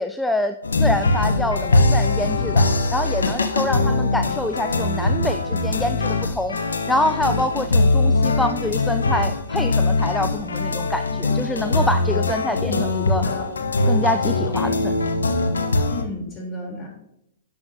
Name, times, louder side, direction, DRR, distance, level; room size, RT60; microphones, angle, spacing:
voice 1, 0.0-2.6 2.9-6.6 6.9-13.2 13.8-15.0, left 1 dB, 5° left, 7 dB, 0.4 m, -26 dB
sound 1, 0.6-16.0, left 2 dB, 90° left, 0.9 m, -21 dB
voice 2, 12.4-13.5 15.9-16.9, left 2 dB, 25° left, -1 dB, 3.5 m, -33 dB
11.5 x 7.1 x 2.8 m, 0.79 s
hypercardioid pair, 125°, 0 cm